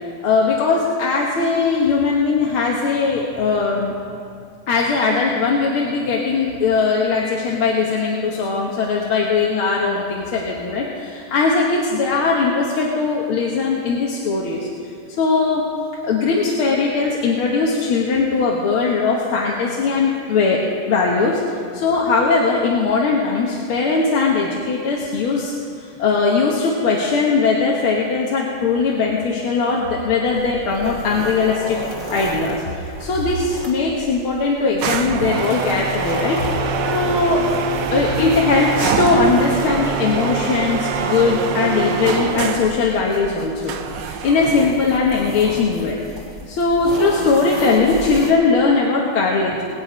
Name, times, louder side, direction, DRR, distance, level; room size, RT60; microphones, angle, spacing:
voice 1, 0.2-3.9 4.7-14.7 15.2-15.6 16.0-20.6 20.9-21.4 21.7-25.5 26.0-31.8 32.1-36.4 36.9-37.5 37.9-46.0 46.5-49.6, left 4 dB, 80° left, -2 dB, 2.1 m, -19 dB
sound 1, 30.3-48.3, right 2 dB, 30° right, 2.5 m, -34 dB
sound 2, 34.8-42.8 43.7-44.6, right 5 dB, 65° right, 1.4 m, -24 dB
21.0 x 9.0 x 5.0 m, 2.5 s
omnidirectional pair, 2.3 m